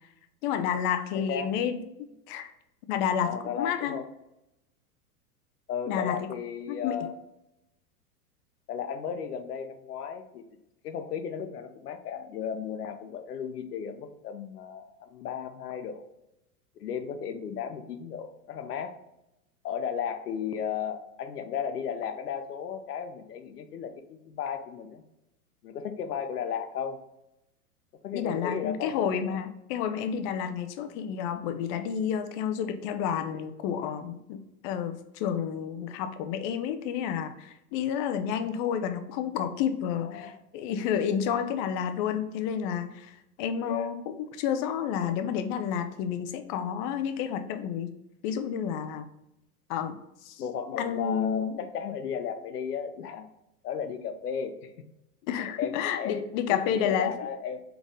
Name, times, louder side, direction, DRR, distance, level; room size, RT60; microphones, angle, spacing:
voice 1, 0.4-1.8 2.3-2.5 2.9-4.0 5.9-6.3 6.7-7.0 17.5-17.6 28.1-47.9 48.2-49.1 49.7-50.0 50.2-50.4 50.8-51.6 55.3-57.1, left 8 dB, 35° left, 8 dB, 0.5 m, -30 dB
voice 2, 1.1-1.6 3.2-4.0 5.7-7.2 8.7-10.4 10.8-16.1 16.8-19.0 19.6-25.0 25.6-27.0 28.0-29.4 40.0-40.4 43.6-43.9 50.4-53.3 53.6-54.7 55.4-56.2 56.5-57.6, left 7 dB, 75° left, 8 dB, 0.7 m, -34 dB
4.0 x 3.4 x 3.5 m, 0.88 s
hypercardioid pair, 100°, 47 cm